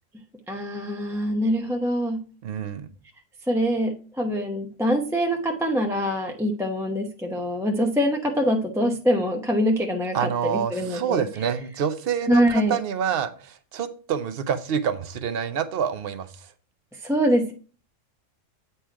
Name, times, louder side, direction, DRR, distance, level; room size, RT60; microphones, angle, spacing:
voice 1, 0.5-2.2 3.4-11.2 12.3-12.8 16.9-17.5, equal, 5° right, 2 dB, 0.5 m, -24 dB
voice 2, 2.4-2.9 10.1-16.5, right 8 dB, 55° right, 11 dB, 0.9 m, -27 dB
8.8 x 4.4 x 4.6 m, 0.38 s
omnidirectional pair, 1.3 m